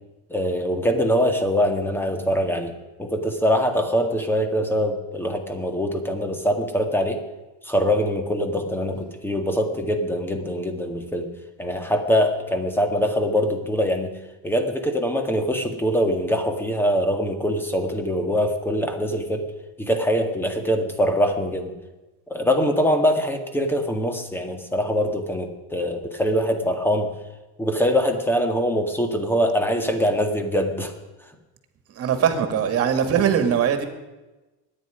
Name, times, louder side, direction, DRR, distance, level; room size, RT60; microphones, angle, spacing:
voice 1, 0.3-2.7 3.0-7.2 7.6-11.3 11.6-14.1 14.4-19.5 19.8-21.7 22.3-27.1 27.6-30.9, equal, 5° left, 5 dB, 1.9 m, -23 dB
voice 2, 31.9-33.9, right 8 dB, 45° right, 7 dB, 2.2 m, -21 dB
24.5 x 10.0 x 5.1 m, 1.1 s
cardioid pair, 130°, 35 cm